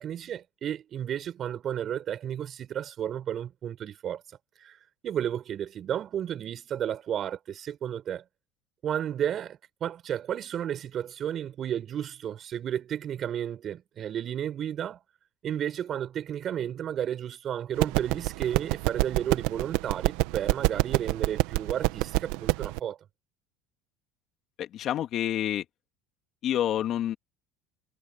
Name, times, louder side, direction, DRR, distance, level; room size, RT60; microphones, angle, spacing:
voice 1, 0.0-4.2 4.6-4.8 5.0-8.2 8.8-15.0 15.4-23.0, right 10 dB, 45° right, 5.9 m, -32 dB
sound 1, 17.8-22.8, right 21 dB, 75° right, 1.6 m, -27 dB
voice 2, 24.6-25.6 26.4-27.2, left 11 dB, 55° left, 2.2 m, -28 dB
supercardioid pair, 90°, 0 cm